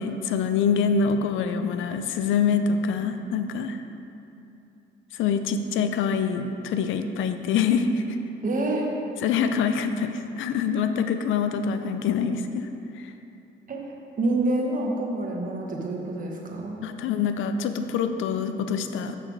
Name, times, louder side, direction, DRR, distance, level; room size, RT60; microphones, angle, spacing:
voice 1, 0.0-3.8 5.1-8.0 9.2-12.7 13.0-13.1 16.8-19.2, left 6 dB, 80° left, 8 dB, 0.5 m, -25 dB
voice 2, 8.4-8.9 13.7-13.9 14.2-16.8, right 2 dB, 45° right, -1 dB, 1.3 m, -27 dB
6.5 x 6.4 x 4.6 m, 2.7 s
cardioid pair, 90°, 20 cm